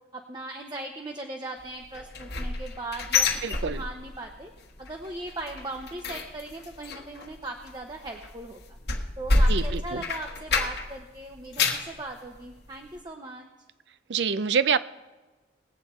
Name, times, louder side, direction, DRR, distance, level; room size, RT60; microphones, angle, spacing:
voice 1, 0.1-3.3 3.6-4.5 4.8-8.6 9.2-13.5, right 2 dB, 25° right, 2 dB, 0.7 m, -38 dB
sound 1, 1.9-4.3 4.6-4.9 5.2-11.0 11.3-11.9 12.4-12.5 13.0-13.1, left 3 dB, 65° left, 1.2 m, -28 dB
voice 2, 3.4-3.8 9.5-10.0 14.1-14.8, right 6 dB, 80° right, 15 dB, 0.5 m, -26 dB
19.5 x 8.0 x 4.3 m, 1.2 s
head